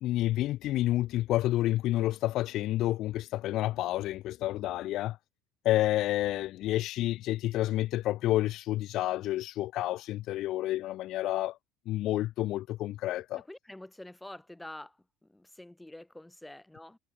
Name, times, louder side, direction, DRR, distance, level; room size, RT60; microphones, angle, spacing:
voice 1, 0.0-5.2 5.6-11.6 11.9-13.4, left 15 dB, 45° left, 1.4 m, -29 dB
voice 2, 13.5-15.0 15.2-17.0, left 1 dB, 5° left, 4.2 m, -47 dB
cardioid pair, 160°, 0 cm